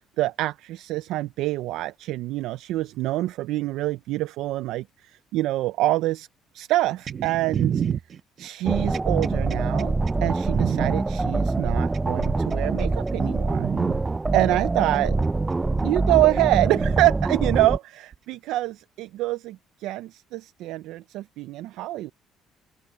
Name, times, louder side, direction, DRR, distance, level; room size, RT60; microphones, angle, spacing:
voice 1, 0.2-6.3 6.5-7.8 8.4-13.7 14.3-15.1 15.8-22.1, right 16 dB, 80° right, 0.4 m, -26 dB
sound 1, 7.1-11.0 11.9-12.6 13.1-13.2 13.5-14.0 15.1-15.2 16.5-17.0 18.1-18.2, right 8 dB, 40° right, 1.3 m, -29 dB
sound 2, 8.7-17.8, right 3 dB, 15° right, 0.4 m, -25 dB
open air
cardioid pair, 125°, 0 cm